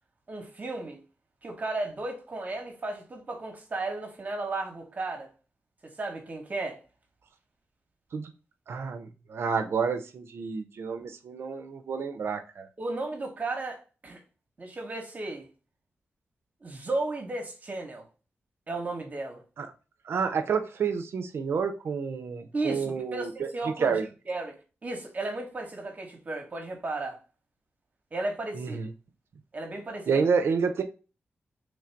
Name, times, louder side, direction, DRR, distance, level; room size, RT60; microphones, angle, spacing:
voice 1, 0.3-1.0 1.4-5.3 5.8-6.8 12.8-14.2 14.6-15.5 16.6-18.0 18.7-19.4 22.5-27.2 28.1-28.8 29.5-30.3, right 2 dB, 40° right, 0.9 m, -34 dB
voice 2, 8.7-12.7 19.6-19.7 20.0-23.5 23.8-24.1 28.5-28.9 30.1-30.8, right 5 dB, 75° right, 0.4 m, -29 dB
3.1 x 2.5 x 4.4 m
wide cardioid pair, 105°, 4 cm